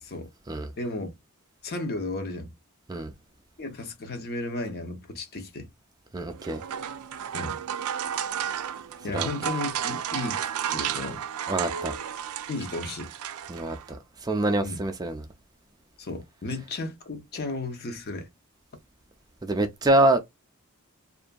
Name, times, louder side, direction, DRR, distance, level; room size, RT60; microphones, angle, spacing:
voice 1, 0.8-1.1 1.6-2.5 3.6-5.7 7.3-7.6 9.0-10.4 10.6-11.2 12.5-13.1 14.6-14.8 16.0-18.3, left 2 dB, 45° left, 0.7 m, -34 dB
voice 2, 6.1-6.6 9.1-9.3 11.5-12.0 13.5-15.2 19.4-20.2, right 1 dB, 15° right, 0.4 m, -25 dB
sound 1, 6.3-13.9, right 9 dB, 85° right, 0.4 m, -33 dB
2.7 x 2.5 x 2.2 m
head